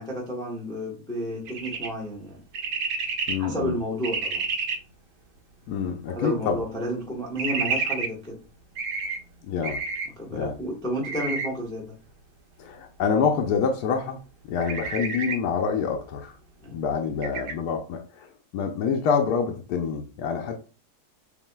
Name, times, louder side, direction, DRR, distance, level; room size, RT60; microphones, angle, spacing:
voice 1, 0.0-2.4 3.4-4.5 6.1-8.4 10.2-11.9 16.6-16.8, equal, 5° left, -2 dB, 0.7 m, -31 dB
sound 1, 1.5-1.9 2.5-3.3 4.0-4.7 7.4-8.1 8.8-9.2 9.6-10.1 11.0-11.5 14.6-15.4 17.2-17.5, right 5 dB, 85° right, 1.4 m, -29 dB
voice 2, 3.3-3.8 5.7-6.6 9.4-9.8 10.3-10.6 12.6-14.2 14.5-16.4 16.7-20.6, left 6 dB, 75° left, 2 dB, 1.1 m, -26 dB
7.0 x 2.6 x 2.2 m, 0.35 s
omnidirectional pair, 1.8 m